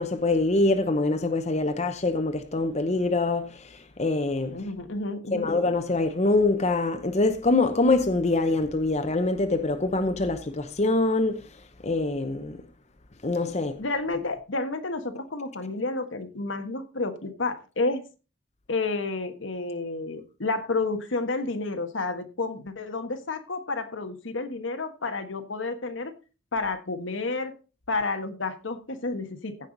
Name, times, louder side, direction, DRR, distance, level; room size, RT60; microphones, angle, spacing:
voice 1, 0.0-4.6 5.3-12.6 13.2-13.8, left 2 dB, 35° left, 0.8 m, -25 dB
voice 2, 4.5-5.5 13.8-18.0 18.7-26.1 26.5-27.5 27.9-29.5, left 3 dB, 80° left, 1.3 m, -30 dB
15.5 x 5.7 x 3.9 m
head